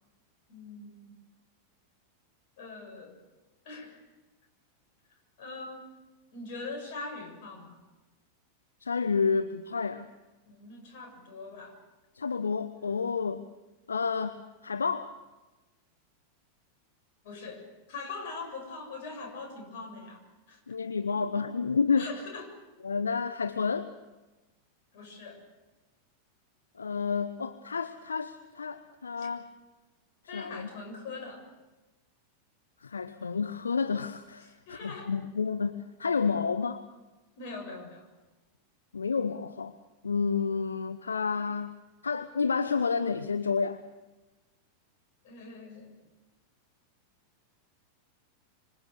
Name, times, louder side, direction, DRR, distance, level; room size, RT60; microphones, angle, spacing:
voice 1, 0.5-1.2 2.6-3.2 3.6-4.0 5.4-5.8 6.3-7.8 10.4-11.8 17.2-20.2 20.5-20.6 22.0-22.6 24.9-25.4 29.2-29.3 30.3-31.4 34.4-35.2 37.4-38.0 45.2-45.9, left 3 dB, 50° left, 4 dB, 7.1 m, -42 dB
voice 2, 8.8-10.1 12.1-13.5 13.9-15.1 20.7-22.1 22.8-23.9 26.8-29.5 30.3-30.7 32.8-36.8 38.9-39.7 40.0-41.8 42.0-43.8, left 5 dB, 75° left, 11 dB, 0.9 m, -30 dB
26.0 x 25.5 x 6.9 m, 1.2 s
figure-of-eight pair, 90°, 0 cm